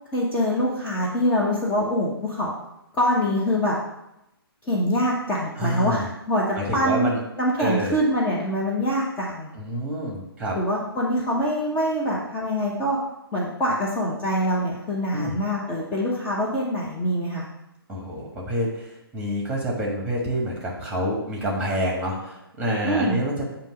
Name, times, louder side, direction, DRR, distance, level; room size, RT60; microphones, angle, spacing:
voice 1, 0.1-2.5 2.9-3.8 4.6-7.1 7.4-9.5 10.5-13.0 13.3-17.4 22.8-23.2, equal, 15° left, -6 dB, 0.7 m, -24 dB
voice 2, 5.6-6.0 6.6-7.2 7.6-8.0 9.5-10.6 15.1-15.4 17.9-23.5, equal, 10° right, -2 dB, 1.4 m, -27 dB
7.5 x 2.9 x 5.1 m, 0.86 s
figure-of-eight pair, 130°, 13 cm